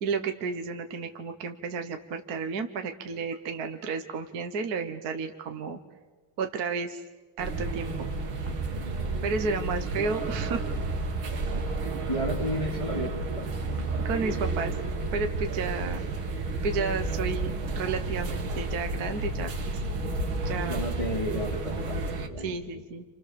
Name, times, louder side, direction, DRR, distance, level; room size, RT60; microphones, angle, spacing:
voice 1, 0.0-5.8 6.4-7.0 7.4-8.1 9.2-10.7 14.0-14.7 15.1-16.0 16.6-19.7 20.4-20.8 22.4-23.0, right 5 dB, 50° right, 6 dB, 1.6 m, -32 dB
sound 1, 7.4-22.3, right 2 dB, 75° right, 2.6 m, -31 dB
voice 2, 12.1-13.5 20.6-22.6, equal, 15° left, 1 dB, 3.5 m, -32 dB
29.5 x 27.5 x 7.0 m, 1.3 s
omnidirectional pair, 2.3 m